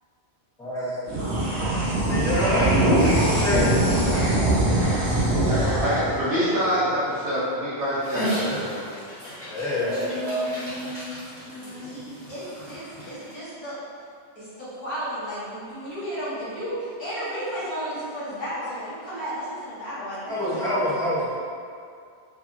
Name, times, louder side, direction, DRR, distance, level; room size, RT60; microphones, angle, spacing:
sound 1, 1.0-7.8, right 1 dB, 85° right, 1.1 m, -23 dB
voice 1, 2.1-2.8 3.1-3.7 5.5-5.8 9.5-10.4 20.3-21.3, left 1 dB, 5° left, -11 dB, 0.6 m, -26 dB
voice 2, 2.9-5.5 9.8-12.2, left 2 dB, 60° left, -7 dB, 0.3 m, -38 dB
voice 3, 5.5-8.9 9.2-9.8, equal, 60° right, -11 dB, 0.8 m, -26 dB
Dog, 8.0-13.3, equal, 40° right, 1.2 m, -35 dB
voice 4, 11.5-13.8 14.4-20.9, equal, 25° left, -12 dB, 1.0 m, -34 dB
2.8 x 2.5 x 2.5 m, 2.3 s
omnidirectional pair, 1.1 m